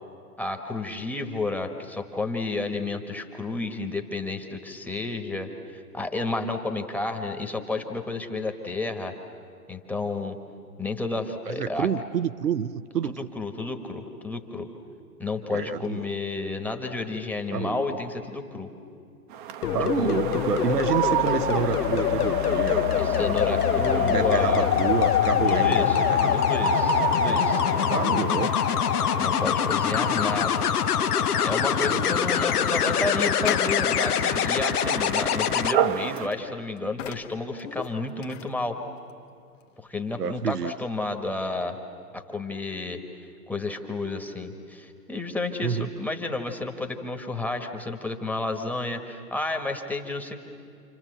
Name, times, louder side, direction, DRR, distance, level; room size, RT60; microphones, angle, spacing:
voice 1, 0.4-9.1 9.7-10.4 10.8-11.9 13.1-14.7 15.2-18.7 20.0-20.2 23.0-24.7 25.4-26.0 26.3-28.2 29.2-30.8 31.2-38.8 39.8-41.8 42.1-43.0 43.5-50.4, left 3 dB, 5° left, 3 dB, 1.3 m, -31 dB
voice 2, 11.5-13.3 15.5-16.1 17.5-18.0 19.7-23.0 23.7-26.4 27.9-28.8 31.8-32.4 40.2-40.7 45.6-45.9, right 7 dB, 80° right, 11 dB, 0.9 m, -29 dB
sound 1, 19.3-36.3, right 9 dB, 35° right, 0.9 m, -32 dB
sound 2, 19.6-35.7 37.6-37.9, left 11 dB, 70° left, 0.7 m, -24 dB
sound 3, 32.4-38.6 39.1-39.2 39.6-39.7, left 10 dB, 50° left, 1.2 m, -38 dB
29.0 x 25.5 x 7.9 m, 2.5 s
figure-of-eight pair, 125°, 47 cm